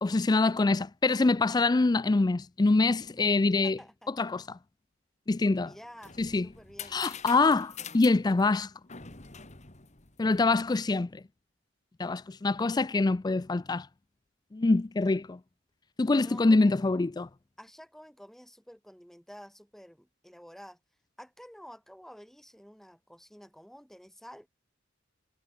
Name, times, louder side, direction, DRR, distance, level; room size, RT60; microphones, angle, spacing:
voice 1, 0.0-3.8 4.1-4.6 5.3-5.7 6.2-6.5 6.9-8.7 10.2-11.2 12.0-13.9 14.5-15.4 16.0-17.3, left 3 dB, 20° left, 0.4 m, -25 dB
voice 2, 3.6-4.1 5.6-6.2 6.4-7.0 16.2-16.8 17.6-20.8 21.2-24.5, equal, ahead, 7.2 m, -50 dB
sound 1, 5.7-10.7, left 7 dB, 40° left, 2.5 m, -46 dB
head